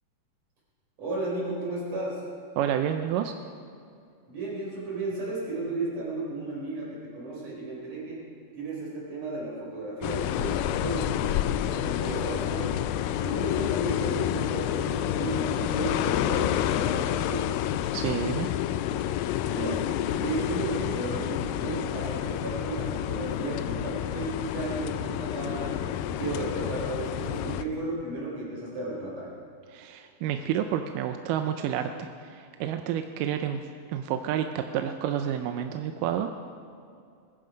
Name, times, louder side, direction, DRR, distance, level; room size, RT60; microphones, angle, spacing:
voice 1, 1.0-2.2 4.3-8.2 8.5-11.3 11.7-12.9 13.2-17.6 19.4-19.8 20.2-25.8 26.0-29.3, right 2 dB, 50° right, -4 dB, 5.6 m, -34 dB
voice 2, 2.6-3.3 17.9-18.5 29.7-33.6 33.9-36.3, right 10 dB, 80° right, 7 dB, 2.2 m, -29 dB
sound 1, 10.0-27.6, left 11 dB, 90° left, 2.3 m, -29 dB
20.5 x 11.5 x 5.2 m, 2.4 s
omnidirectional pair, 3.8 m